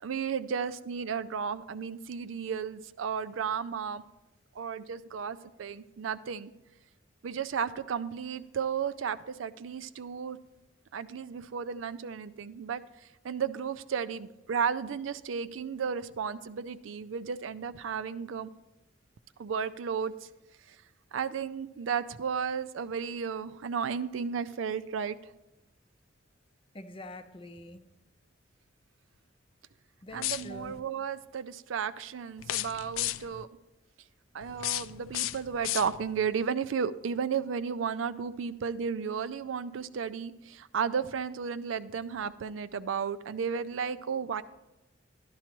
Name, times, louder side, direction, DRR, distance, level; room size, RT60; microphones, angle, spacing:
voice 1, 0.0-4.0 4.6-6.5 7.2-10.4 10.9-12.8 13.2-18.5 19.4-20.1 21.1-25.2 30.1-33.5 34.3-44.4, right 6 dB, 80° right, 12 dB, 0.4 m, -33 dB
voice 2, 26.7-27.8 30.0-30.8, left 1 dB, 30° left, 9 dB, 0.6 m, -45 dB
sound 1, 30.1-30.8 32.4-33.4 34.4-36.3, left 14 dB, 85° left, 0.3 m, -35 dB
12.0 x 11.5 x 3.0 m, 1.0 s
head